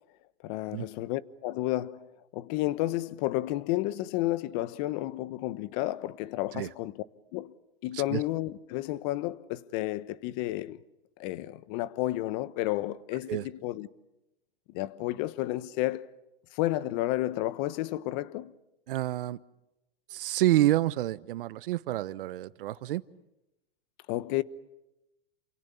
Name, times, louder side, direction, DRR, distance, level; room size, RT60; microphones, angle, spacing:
voice 1, 0.4-6.9 7.3-7.5 7.8-10.8 11.2-13.9 14.7-16.1 16.6-18.5 24.1-24.4, left 16 dB, 45° left, 1.2 m, -31 dB
voice 2, 18.9-19.4 20.1-23.0, right 15 dB, 65° right, 1.1 m, -28 dB
28.5 x 28.0 x 7.1 m
hypercardioid pair, 130°, 29 cm